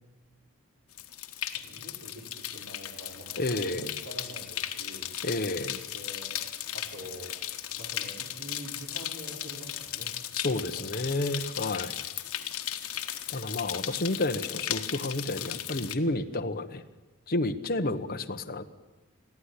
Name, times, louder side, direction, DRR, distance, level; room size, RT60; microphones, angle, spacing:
sound 1, 0.9-15.9, left 11 dB, 75° left, 1.4 m, -36 dB
voice 1, 1.4-5.1 5.9-6.4 6.7-7.3 7.8-10.1 10.4-11.0, right 1 dB, 75° right, 1 dB, 5.4 m, -46 dB
voice 2, 3.4-3.9 5.2-5.8 10.3-11.9 13.3-16.8 17.3-18.6, left 2 dB, 40° left, 7 dB, 1.1 m, -30 dB
22.0 x 15.0 x 9.9 m, 1.2 s
head